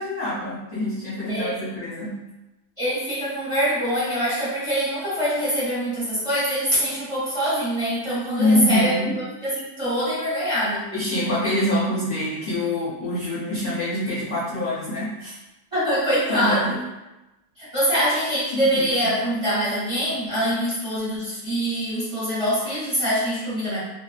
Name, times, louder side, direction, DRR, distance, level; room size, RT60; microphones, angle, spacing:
voice 1, 0.0-2.2 8.4-9.2 10.9-15.4 16.3-16.8 18.5-19.1, left 1 dB, 50° left, -10 dB, 0.6 m, -25 dB
voice 2, 1.3-1.6 2.8-9.0 9.4-10.9 15.7-16.8 17.6-23.8, equal, 25° right, -11 dB, 1.1 m, -24 dB
2.5 x 2.2 x 2.4 m, 1.0 s
omnidirectional pair, 1.6 m